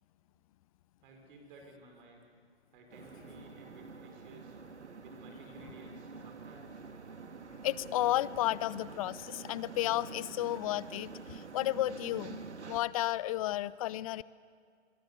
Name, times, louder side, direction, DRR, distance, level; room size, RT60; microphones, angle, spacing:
voice 1, 1.0-2.2 2.7-4.6 5.0-6.8, right 2 dB, 50° right, 3 dB, 5.0 m, -55 dB
sound 1, 2.9-12.8, right 4 dB, 80° right, 1.9 m, -47 dB
voice 2, 7.6-12.4 12.7-14.2, left 15 dB, 30° left, 20 dB, 0.5 m, -32 dB
30.0 x 23.0 x 6.9 m, 2.1 s
figure-of-eight pair, 120°, 34 cm